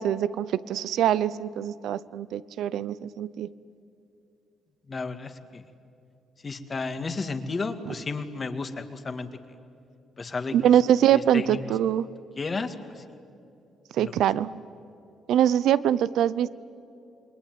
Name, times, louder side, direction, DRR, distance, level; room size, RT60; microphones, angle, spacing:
voice 1, 0.0-3.5 7.9-8.0 10.5-12.1 13.9-14.5 15.3-16.5, right 10 dB, 80° right, 18 dB, 0.8 m, -23 dB
voice 2, 4.9-5.6 6.4-9.3 10.2-10.6 11.3-11.6 12.4-12.7 14.0-14.1, left 4 dB, 35° left, 8 dB, 2.1 m, -32 dB
28.0 x 22.0 x 9.4 m, 2.7 s
cardioid pair, 90°, 0 cm